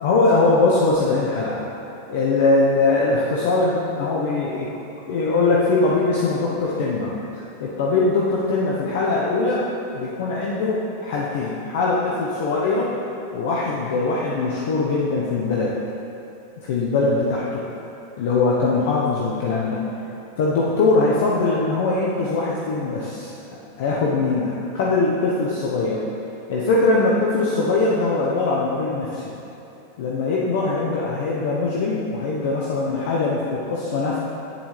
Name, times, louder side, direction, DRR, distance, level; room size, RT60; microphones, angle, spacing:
voice 1, 0.0-1.6 2.1-4.7 5.1-9.6 9.9-12.9 13.3-15.8 16.6-17.6 18.2-19.8 20.4-26.0 26.5-29.2 30.0-34.2, left 3 dB, 70° left, -5 dB, 1.0 m, -21 dB
9.9 x 7.3 x 3.3 m, 2.8 s
hypercardioid pair, 110°, 0 cm